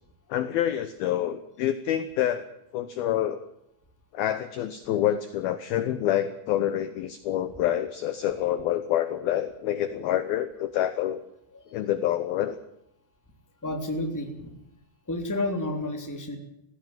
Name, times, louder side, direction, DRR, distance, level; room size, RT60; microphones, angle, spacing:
voice 1, 0.3-2.5 2.7-3.4 4.1-11.2 11.7-12.6, left 11 dB, 75° left, 12 dB, 2.3 m, -27 dB
voice 2, 13.6-14.5 15.1-16.4, left 1 dB, 5° left, 4 dB, 2.3 m, -31 dB
19.0 x 16.0 x 9.2 m, 0.82 s
omnidirectional pair, 5.5 m